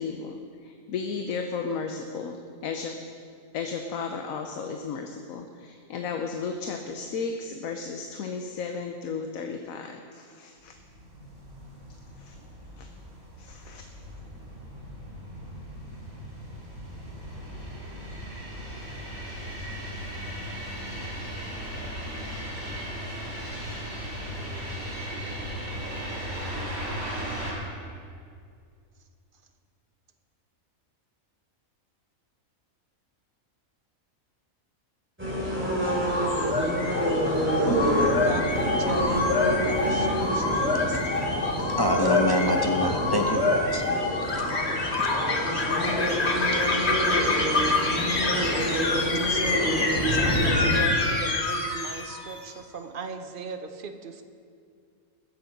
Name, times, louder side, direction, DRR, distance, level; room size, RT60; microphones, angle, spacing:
voice 1, 0.0-2.9 3.5-10.7 12.2-12.4 12.8-12.9 13.4-13.8, left 5 dB, 75° left, 5 dB, 1.2 m, -34 dB
sound 1, 10.8-27.5, equal, 75° right, 4.2 m, -37 dB
sound 2, 35.2-50.8, equal, 10° right, 3.1 m, -28 dB
sound 3, 35.8-52.4, left 3 dB, 50° left, 1.6 m, -27 dB
voice 2, 37.7-41.5 46.9-47.4 47.7-54.2, right 5 dB, 45° right, 7 dB, 0.9 m, -38 dB
voice 3, 41.6-45.7, equal, 20° left, 2 dB, 0.6 m, -28 dB
21.0 x 7.2 x 5.3 m, 2.3 s
omnidirectional pair, 1.5 m